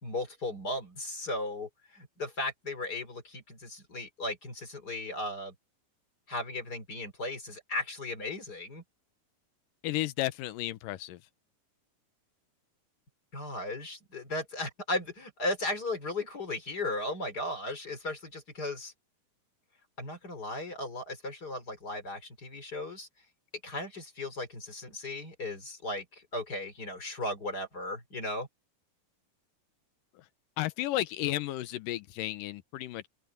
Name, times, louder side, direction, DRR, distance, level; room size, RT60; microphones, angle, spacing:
voice 1, 0.0-5.5 6.3-8.8 13.3-18.9 20.0-23.1 23.6-28.5, left 2 dB, 30° left, 3.6 m, -36 dB
voice 2, 9.8-11.2 30.2-30.3 30.6-33.1, left 15 dB, 85° left, 2.5 m, -33 dB
omnidirectional pair, 3.8 m